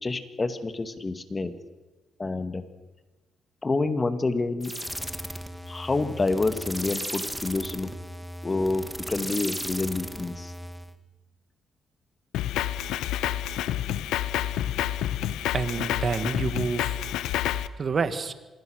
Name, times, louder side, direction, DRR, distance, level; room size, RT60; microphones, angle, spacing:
voice 1, 0.0-1.5 2.2-2.6 3.6-4.7 5.7-7.9 8.4-10.5, left 3 dB, 25° left, 10 dB, 2.1 m, -28 dB
sound 1, 4.6-10.9, equal, 5° right, 1.8 m, -36 dB
Drum kit, 12.3-17.7, left 12 dB, 90° left, 0.8 m, -28 dB
voice 2, 15.5-17.0 17.8-18.3, right 5 dB, 45° right, 12 dB, 1.7 m, -28 dB
26.5 x 20.5 x 6.5 m, 1.2 s
cardioid pair, 90°, 0 cm